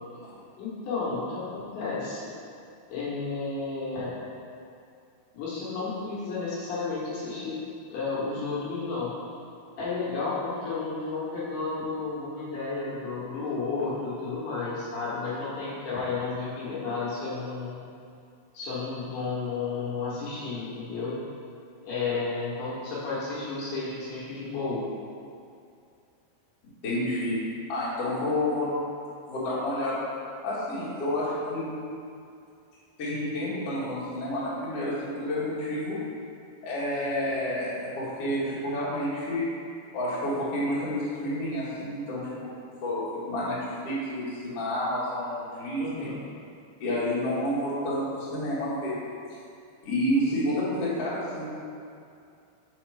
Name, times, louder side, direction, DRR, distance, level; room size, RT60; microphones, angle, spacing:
voice 1, 0.6-2.3 2.9-4.2 5.3-7.6 7.9-9.2 9.8-17.8 18.5-21.2 21.8-24.9 45.8-46.2, left 4 dB, 70° left, -8 dB, 3.0 m, -32 dB
voice 2, 26.8-27.4 27.7-28.7 29.3-30.0 30.4-31.7 33.0-36.0 36.6-39.5 39.9-42.5 42.8-46.1 46.8-48.9 49.8-51.5, left 1 dB, 50° left, -9 dB, 2.0 m, -29 dB
6.2 x 5.2 x 4.7 m, 2.5 s
omnidirectional pair, 5.0 m